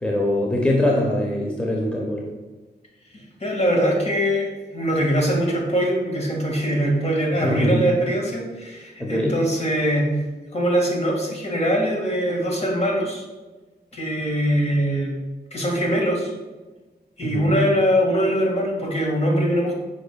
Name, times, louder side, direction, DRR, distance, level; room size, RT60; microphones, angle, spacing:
voice 1, 0.0-2.2 7.4-7.9 9.0-9.4 17.2-17.6, left 1 dB, 5° left, -1 dB, 0.8 m, -22 dB
voice 2, 3.4-10.1 10.5-13.2 13.9-15.1 15.5-16.3 17.2-19.7, equal, 40° left, -1 dB, 1.9 m, -22 dB
8.1 x 5.2 x 2.3 m, 1.2 s
cardioid pair, 75°, 17 cm